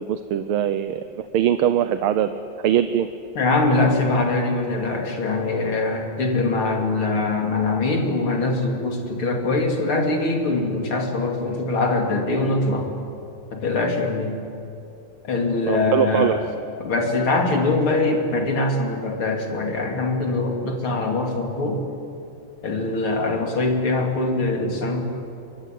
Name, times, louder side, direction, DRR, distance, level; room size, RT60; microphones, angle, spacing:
voice 1, 0.0-2.3 2.6-3.1 15.7-16.4, right 10 dB, 80° right, 10 dB, 1.6 m, -22 dB
voice 2, 3.4-12.9 13.5-14.4 15.2-16.4 16.8-21.8 22.6-25.0, left 2 dB, 75° left, 2 dB, 3.8 m, -23 dB
23.0 x 23.0 x 9.4 m, 2.7 s
omnidirectional pair, 2.3 m